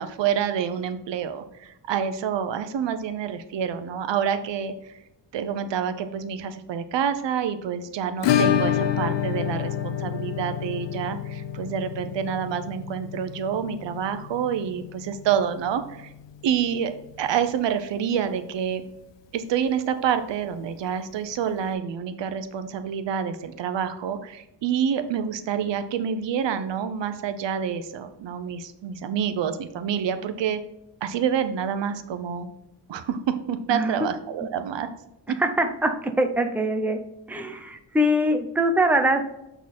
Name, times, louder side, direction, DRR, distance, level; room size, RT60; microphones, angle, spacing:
voice 1, 0.0-5.0 5.3-16.1 16.4-16.9 17.2-18.8 19.3-30.6 31.0-32.5 32.9-34.9 35.3-35.4, right 8 dB, 80° right, 10 dB, 0.8 m, -27 dB
Acoustic guitar / Strum, 8.2-16.8 17.1-17.2 17.5-17.6 17.9-18.0 20.1-20.2 21.3-21.4, left 9 dB, 80° left, 0.7 m, -28 dB
voice 2, 33.7-34.1 35.4-37.0 37.3-39.3, equal, 5° right, 5 dB, 0.7 m, -23 dB
8.4 x 4.0 x 4.3 m, 0.89 s
wide cardioid pair, 130°, 43 cm